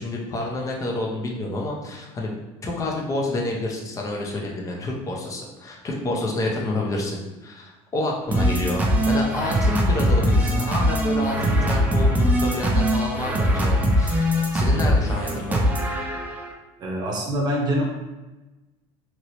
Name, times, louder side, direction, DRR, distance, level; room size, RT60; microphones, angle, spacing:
voice 1, 0.0-2.3 2.6-14.2 14.5-15.6, left 2 dB, 25° left, -1 dB, 0.6 m, -28 dB
sound 1, 8.3-16.5, equal, 10° right, 0.4 m, -21 dB
voice 2, 16.8-17.8, equal, 35° right, -1 dB, 0.8 m, -24 dB
2.9 x 2.9 x 2.9 m, 1.1 s
cardioid pair, 145°, 13 cm